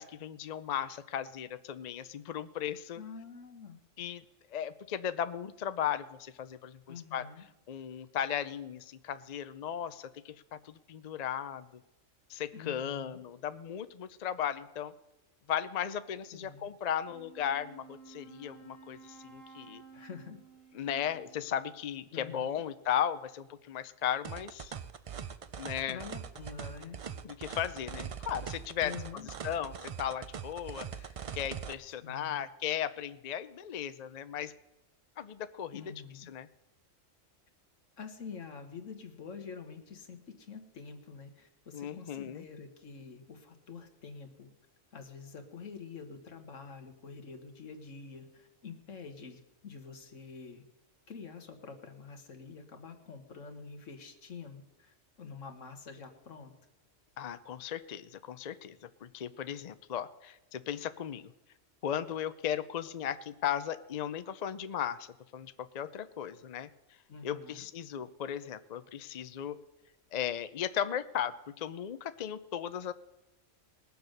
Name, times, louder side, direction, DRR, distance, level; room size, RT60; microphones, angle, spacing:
voice 1, 0.0-3.0 4.0-4.2 4.5-7.3 7.7-11.8 12.3-14.9 15.5-19.8 20.7-24.7 25.6-26.0 27.2-34.5 35.2-35.9 36.3-36.5 41.7-42.4 57.2-61.3 61.8-66.7 67.2-69.6 70.1-72.9, left 9 dB, 50° left, 13 dB, 0.5 m, -36 dB
voice 2, 3.0-3.8 6.9-7.4 12.5-13.2 16.3-16.7 19.9-20.4 22.1-22.6 25.9-27.0 28.8-29.3 32.0-32.4 35.7-36.3 38.0-44.5 44.9-50.6 51.1-56.5 67.1-67.7, left 5 dB, 75° left, 6 dB, 1.7 m, -47 dB
Wind instrument woodwind instrument, 17.0-21.9, right 5 dB, 75° right, 2.8 m, -54 dB
sound 1, 24.2-31.7, right 7 dB, 60° right, 0.3 m, -42 dB
20.0 x 6.9 x 6.5 m, 0.97 s
omnidirectional pair, 1.3 m